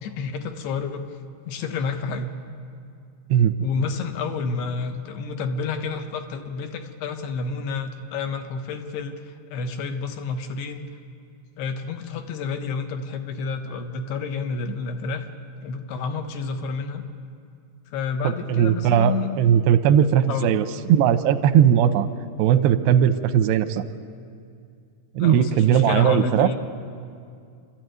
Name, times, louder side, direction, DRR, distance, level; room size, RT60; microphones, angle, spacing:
voice 1, 0.0-1.0 1.5-2.3 3.6-10.8 11.6-15.3 15.6-17.0 17.9-19.3 20.3-20.5 25.2-26.6, left 5 dB, 75° left, 6 dB, 3.2 m, -29 dB
voice 2, 18.2-22.1 22.4-23.8 25.2-26.5, right 9 dB, 90° right, 11 dB, 2.9 m, -18 dB
28.5 x 13.0 x 9.3 m, 2.4 s
omnidirectional pair, 4.7 m